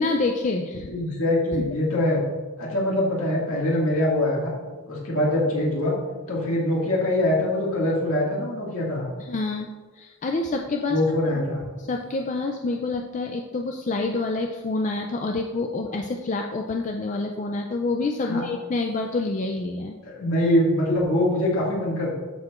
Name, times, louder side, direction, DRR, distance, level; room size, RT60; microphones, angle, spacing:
voice 1, 0.0-1.2 9.2-9.7 9.9-11.0 11.8-20.0, left 3 dB, 35° left, 3 dB, 0.4 m, -27 dB
voice 2, 0.9-2.2 2.6-4.5 4.9-6.0 6.3-9.0 10.9-11.6 18.3-18.4 20.0-22.1, left 1 dB, 70° left, -4 dB, 2.0 m, -23 dB
13.0 x 4.6 x 2.5 m, 1.4 s
head